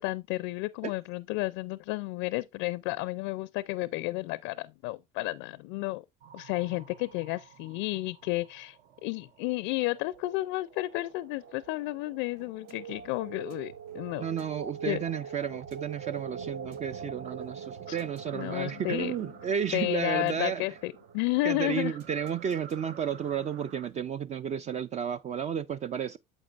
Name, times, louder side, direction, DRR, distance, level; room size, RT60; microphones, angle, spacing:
voice 1, 0.0-6.0 6.3-14.3 14.8-15.0 17.9-18.0 18.3-19.2 19.7-22.0, left 20 dB, 70° left, 0.4 m, -32 dB
sound 1, 6.2-23.9, right 7 dB, 65° right, 0.9 m, -45 dB
sound 2, 12.4-24.2, right 8 dB, 85° right, 1.0 m, -59 dB
voice 2, 14.2-20.6 21.4-26.2, right 8 dB, 35° right, 0.4 m, -32 dB
8.9 x 7.0 x 2.4 m
supercardioid pair, 90°, 21 cm